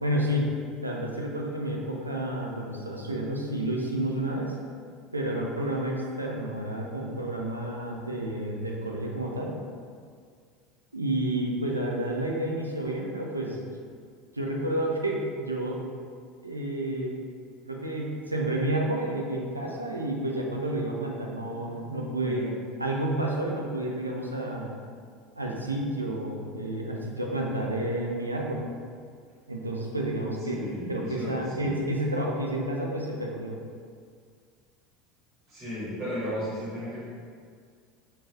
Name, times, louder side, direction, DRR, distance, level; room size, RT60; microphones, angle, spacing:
voice 1, 0.0-0.5 0.8-4.5 5.1-9.5 10.9-13.7 14.3-15.8 16.4-17.1 17.7-22.4 22.8-24.7 25.4-28.6 29.5-30.6 30.9-33.6, right 1 dB, 90° right, -1 dB, 0.3 m, -30 dB
voice 2, 30.4-31.7 35.5-37.0, equal, 45° right, -10 dB, 1.5 m, -35 dB
3.0 x 2.9 x 2.3 m, 2.1 s
figure-of-eight pair, 75°, 0 cm